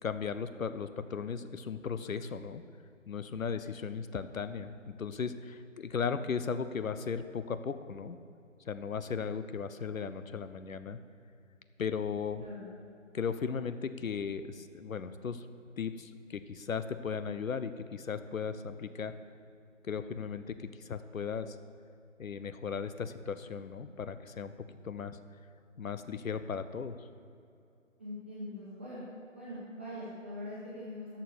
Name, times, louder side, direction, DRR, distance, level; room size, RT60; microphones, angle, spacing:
voice 1, 0.0-2.6 3.1-8.2 8.7-11.0 11.8-12.5 13.1-15.5 15.8-19.2 19.8-21.6 22.2-25.2 25.8-27.0, left 6 dB, 85° left, 12 dB, 0.8 m, -36 dB
voice 2, 28.0-29.0 29.3-31.2, left 1 dB, 10° right, -10 dB, 1.2 m, -42 dB
11.5 x 6.7 x 6.7 m, 2.5 s
figure-of-eight pair, 175°, 39 cm